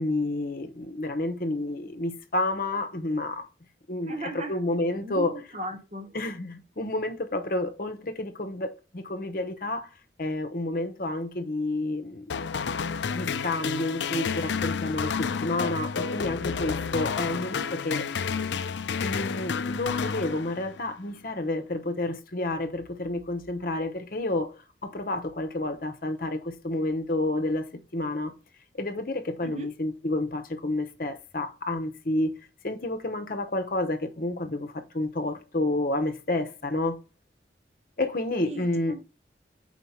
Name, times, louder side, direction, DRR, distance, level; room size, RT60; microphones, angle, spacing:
voice 1, 0.0-3.3 3.9-5.4 6.1-8.7 9.1-9.8 10.2-12.1 13.1-15.1 15.4-18.0 19.0-24.5 24.9-26.4 26.6-27.6 27.9-28.3 28.8-32.3 32.6-34.6 34.9-36.9 38.0-39.0, left 2 dB, 50° left, 0.9 m, -29 dB
voice 2, 4.0-4.6 5.0-6.2 29.4-29.7 38.4-39.0, right 2 dB, 40° right, 1.2 m, -37 dB
sound 1, 12.3-20.9, left 6 dB, 85° left, 0.5 m, -30 dB
4.6 x 4.5 x 5.6 m
head